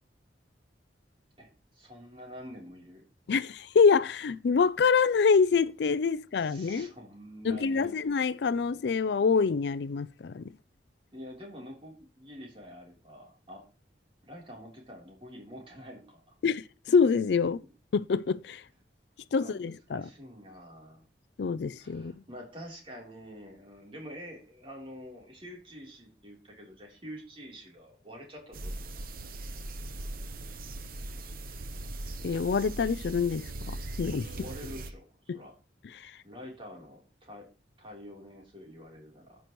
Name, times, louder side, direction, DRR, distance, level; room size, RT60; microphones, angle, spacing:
voice 1, 1.4-3.0 6.4-7.9 11.1-13.6 14.2-16.3 19.3-21.1 21.8-28.8 34.3-35.5 36.2-37.5 37.8-39.4, equal, 30° right, 3.4 m, -47 dB
voice 2, 3.3-6.9 7.4-10.5 16.4-17.6 17.9-18.6 19.3-20.0 21.4-22.2 32.2-34.3 35.3-35.4 35.9-36.1, left 5 dB, 65° left, 0.4 m, -26 dB
sound 1, 28.5-34.9, right 2 dB, 50° right, 0.9 m, -39 dB
14.0 x 6.0 x 3.1 m
head